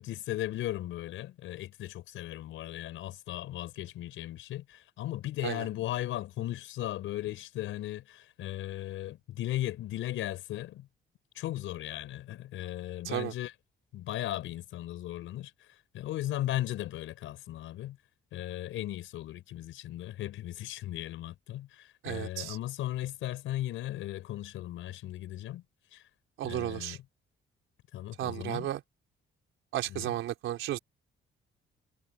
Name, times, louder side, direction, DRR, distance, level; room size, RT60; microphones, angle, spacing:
voice 1, 0.0-10.9 11.3-13.5 13.9-15.5 15.9-18.0 18.3-25.6 25.9-26.0 26.4-27.0 27.9-28.7 29.9-30.1, left 14 dB, 90° left, 5.2 m, -37 dB
voice 2, 22.0-22.6 26.4-27.0 28.2-28.8 29.7-30.8, right 13 dB, 85° right, 4.4 m, -33 dB
cardioid pair, 90°, 20 cm